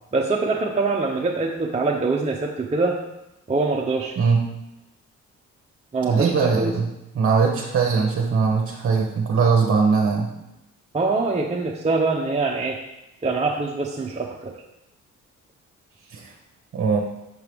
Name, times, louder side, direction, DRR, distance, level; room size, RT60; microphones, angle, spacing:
voice 1, 0.1-3.0 3.5-4.2 5.9-6.7 10.9-12.8 13.2-14.5, right 3 dB, 20° right, -1 dB, 0.7 m, -24 dB
voice 2, 6.1-6.9 7.1-10.3 16.1-16.3 16.7-17.0, right 5 dB, 45° right, 0 dB, 0.9 m, -20 dB
6.8 x 4.6 x 3.5 m, 0.90 s
cardioid pair, 90°, 30 cm